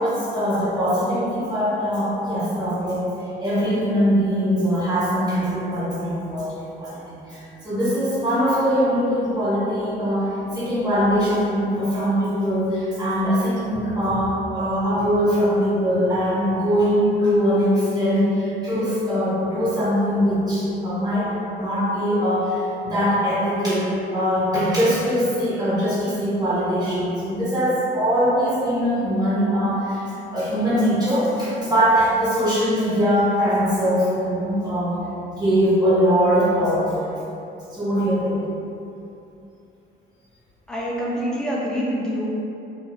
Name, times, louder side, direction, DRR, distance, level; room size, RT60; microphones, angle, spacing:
voice 1, 0.0-3.0 3.4-30.0 30.3-35.0 35.3-37.1 37.7-38.4, equal, 20° right, -11 dB, 1.4 m, -22 dB
voice 2, 40.7-42.3, equal, 5° left, -6 dB, 0.6 m, -26 dB
2.6 x 2.3 x 3.0 m, 2.8 s
cardioid pair, 90°, 20 cm